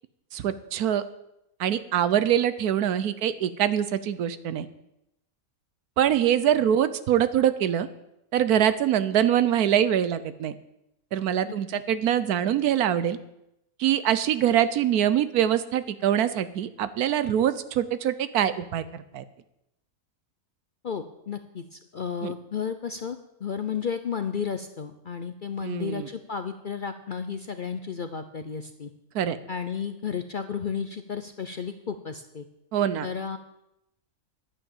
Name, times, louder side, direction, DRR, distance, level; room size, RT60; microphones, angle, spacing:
voice 1, 0.3-1.0 1.6-4.7 6.0-7.9 8.3-10.6 11.1-13.2 13.8-19.2 22.2-22.3 25.6-26.1 29.1-29.4 32.7-33.1, right 10 dB, 85° right, 14 dB, 1.3 m, -24 dB
voice 2, 20.8-28.9 29.5-32.4 33.0-33.4, left 6 dB, 55° left, 9 dB, 0.6 m, -33 dB
11.5 x 8.8 x 7.2 m, 0.85 s
omnidirectional pair, 1.6 m